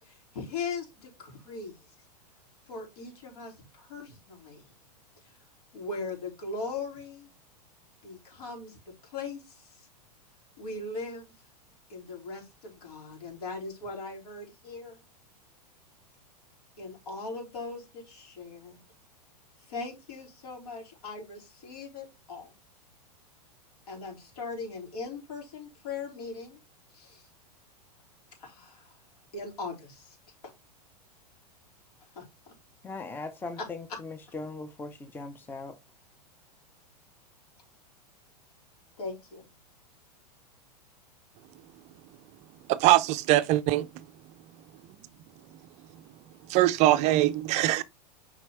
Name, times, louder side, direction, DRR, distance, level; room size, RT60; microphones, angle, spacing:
voice 1, 0.0-1.8 2.7-4.6 5.2-5.3 5.7-7.3 8.0-8.8 9.0-9.9 10.6-11.3 11.9-15.0 16.8-18.8 19.7-22.5 23.9-26.6 26.9-27.3 28.4-28.9 29.3-30.2 30.4-30.5 32.1-32.2 33.6-34.0 39.0-39.5, left 3 dB, 65° left, 4.1 m, -39 dB
voice 2, 32.8-35.8, left 3 dB, 10° left, 0.6 m, -39 dB
voice 3, 42.7-43.9 46.5-47.8, right 15 dB, 35° right, 0.4 m, -22 dB
7.2 x 5.0 x 3.3 m
figure-of-eight pair, 100°, 21 cm